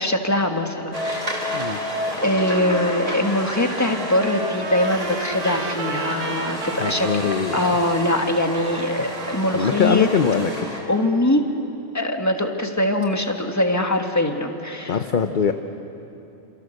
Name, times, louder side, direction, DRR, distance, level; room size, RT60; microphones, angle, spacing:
voice 1, 0.0-1.6 2.2-10.1 10.9-11.5 11.9-15.0, left 1 dB, 10° left, 4 dB, 1.6 m, -22 dB
sound 1, 0.9-10.8, equal, 25° right, 4.1 m, -30 dB
Trumpet, 3.4-10.4, right 6 dB, 65° right, 1.3 m, -35 dB
voice 2, 6.8-7.6 9.5-10.7 14.9-15.5, left 6 dB, 45° left, 7 dB, 0.8 m, -22 dB
28.5 x 27.0 x 6.6 m, 2.8 s
omnidirectional pair, 1.4 m